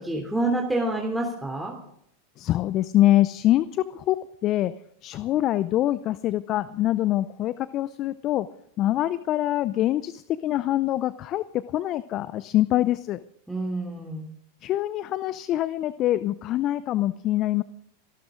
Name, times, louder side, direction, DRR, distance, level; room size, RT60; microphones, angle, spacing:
voice 1, 0.0-1.7 13.5-14.3, right 2 dB, 5° right, -1 dB, 3.0 m, -27 dB
voice 2, 2.4-4.2 4.4-4.7 5.0-8.5 8.8-13.2 14.6-17.6, left 14 dB, 40° left, 17 dB, 0.5 m, -24 dB
27.5 x 12.5 x 3.8 m, 0.70 s
hypercardioid pair, 95°, 0 cm